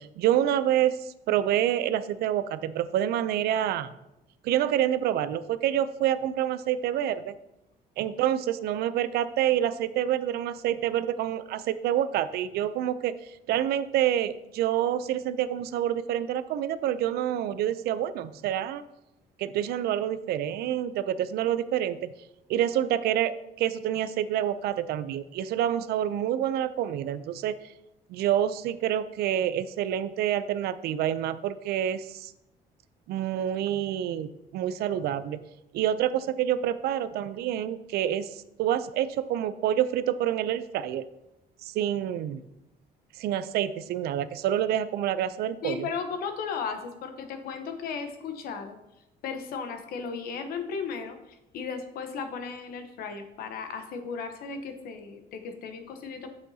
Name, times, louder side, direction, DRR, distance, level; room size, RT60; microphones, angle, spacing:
voice 1, 0.0-3.9 4.4-7.3 8.0-18.8 19.4-22.1 22.5-27.6 28.1-32.3 33.1-35.4 35.7-41.0 41.6-42.4 43.2-45.9, right 11 dB, 75° right, 13 dB, 0.5 m, -27 dB
voice 2, 45.6-48.8 49.2-51.2 51.5-56.3, left 5 dB, 65° left, 7 dB, 0.9 m, -35 dB
9.0 x 6.9 x 2.8 m, 0.89 s
cardioid pair, 165°, 17 cm